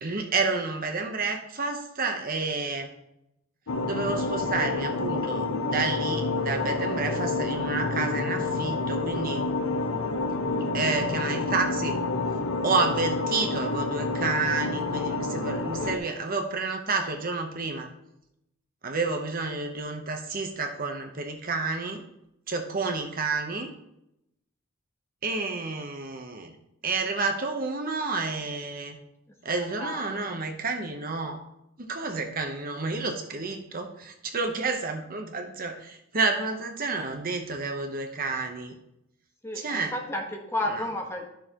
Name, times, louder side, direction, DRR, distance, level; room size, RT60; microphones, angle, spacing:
voice 1, 0.0-2.9 3.8-9.4 10.7-12.0 12.6-17.9 18.8-22.0 22.5-23.7 25.2-26.5 26.8-29.0 29.4-31.4 31.8-38.7 39.6-39.9, right 4 dB, 45° right, 5 dB, 0.9 m, -30 dB
sound 1, 3.7-16.0, left 3 dB, 75° left, 0.7 m, -28 dB
voice 2, 29.5-30.2 36.4-36.5 39.4-41.3, left 1 dB, 10° left, 1 dB, 1.1 m, -33 dB
11.5 x 6.8 x 2.9 m, 0.83 s
head